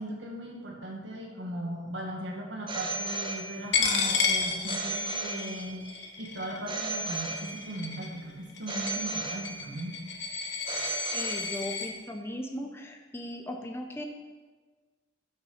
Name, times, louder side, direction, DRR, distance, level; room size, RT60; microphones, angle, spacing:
voice 1, 0.0-9.9, right 1 dB, 65° right, 0 dB, 1.6 m, -38 dB
Telephone, 2.7-3.9 4.7-5.9 6.7-7.9 8.7-9.9 10.7-11.9, right 3 dB, 25° right, 1.0 m, -35 dB
Coin (dropping), 3.7-11.9, left 5 dB, 65° left, 0.9 m, -32 dB
voice 2, 11.1-14.0, left 1 dB, 15° left, 3 dB, 0.5 m, -37 dB
6.6 x 6.1 x 5.7 m, 1.4 s
head